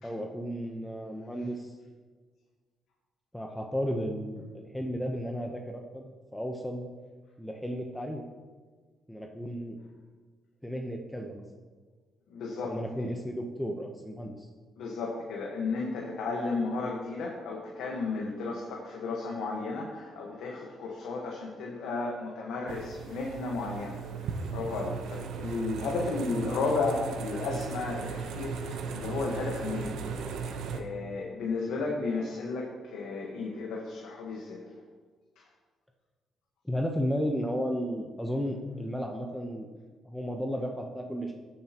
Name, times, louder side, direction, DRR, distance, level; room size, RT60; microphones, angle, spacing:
voice 1, 0.0-1.8 3.3-6.9 7.4-8.3 9.1-9.8 10.6-11.4 12.6-14.5 26.3-26.5 36.6-39.7 40.0-41.3, equal, 5° left, 2 dB, 0.8 m, -34 dB
voice 2, 12.3-13.1 14.8-34.7 35.4-35.5, left 3 dB, 85° left, -1 dB, 1.3 m, -34 dB
sound 1, 22.7-30.8, right 5 dB, 85° right, 0.8 m, -37 dB
13.5 x 7.4 x 2.9 m, 1.4 s
cardioid pair, 90°, 0 cm